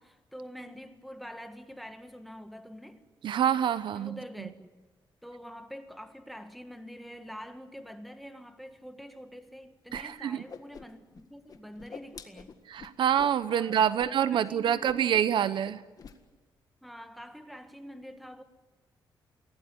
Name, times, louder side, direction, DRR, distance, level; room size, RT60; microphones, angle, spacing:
voice 1, 0.0-3.1 3.9-4.9 5.2-12.6 13.5-15.2 16.8-18.4, equal, ahead, 1.7 m, -46 dB
voice 2, 3.2-4.5 9.9-10.4 12.7-15.8, right 9 dB, 70° right, 0.7 m, -27 dB
Whoosh swoosh swish, 9.9-10.0 10.3-11.2 11.5-13.4 13.8-14.1 14.3-14.5 14.8-15.4 15.6-16.2, left 6 dB, 50° left, 1.8 m, -47 dB
23.0 x 17.0 x 9.9 m
cardioid pair, 120°, 8 cm